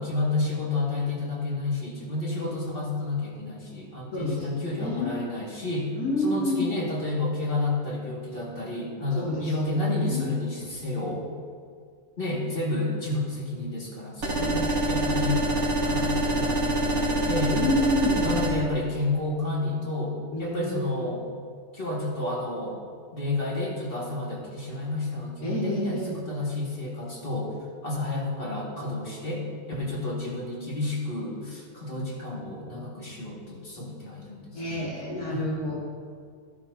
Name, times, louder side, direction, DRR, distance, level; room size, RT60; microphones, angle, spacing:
voice 1, 0.0-5.9 6.2-11.2 12.2-15.4 15.8-17.6 18.2-21.3 21.7-22.8 23.1-27.5 27.8-34.9 35.3-35.5, left 2 dB, 40° left, -4 dB, 2.3 m, -30 dB
voice 2, 2.4-2.7 4.1-5.1 5.9-6.7 9.2-10.3 13.1-13.2 14.3-15.4 17.5-18.3 20.3-21.0 25.4-26.2 34.5-35.7, left 1 dB, 80° left, -5 dB, 2.9 m, -29 dB
sound 1, 14.2-18.5, right 1 dB, 75° right, 2.3 m, -25 dB
13.5 x 12.0 x 2.8 m, 2.1 s
omnidirectional pair, 1.5 m